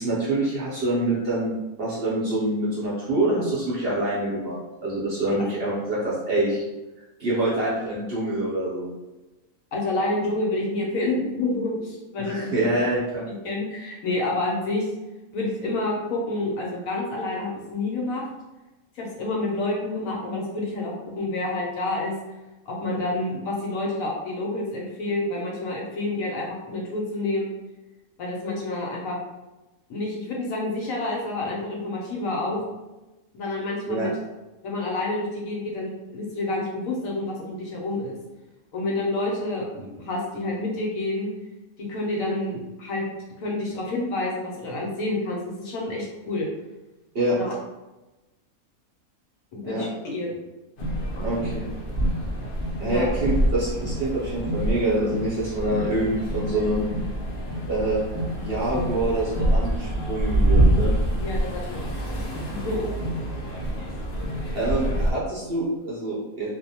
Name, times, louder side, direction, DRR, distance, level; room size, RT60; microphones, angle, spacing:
voice 1, 0.0-6.6 7.2-8.9 12.2-13.2 33.9-34.1 47.1-47.4 49.6-49.8 51.2-51.6 52.8-56.9 57.7-58.0 58.4-60.9 64.5-66.5, right 1 dB, 55° right, -8 dB, 0.7 m, -26 dB
voice 2, 9.7-12.7 13.3-14.9 15.3-18.3 18.9-22.1 22.7-27.5 28.2-29.2 29.9-32.6 33.3-34.1 34.6-38.2 38.7-41.3 41.8-43.0 43.4-46.5 47.4-47.5 49.5-50.4 51.1-51.4 52.8-53.1 61.2-62.2 62.5-62.9, left 2 dB, 70° left, -2 dB, 1.0 m, -28 dB
sound 1, 50.8-65.1, right 1 dB, 85° left, 0.4 m, -26 dB
2.5 x 2.1 x 2.7 m, 1.1 s
omnidirectional pair, 1.5 m